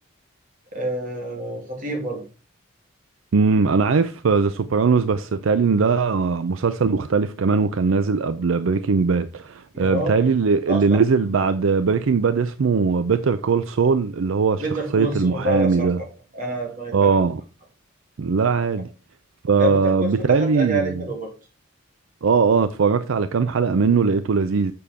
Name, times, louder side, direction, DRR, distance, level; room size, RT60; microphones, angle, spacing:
voice 1, 0.7-2.2 9.7-10.3 10.7-11.0 14.6-16.1 16.3-17.2 19.6-21.3, right 1 dB, 45° right, 3.0 m, -28 dB
voice 2, 3.3-14.6 14.9-16.0 16.9-17.4 18.2-18.9 19.4-20.9 22.2-24.7, right 5 dB, 75° right, 0.5 m, -20 dB
6.8 x 6.8 x 3.6 m
head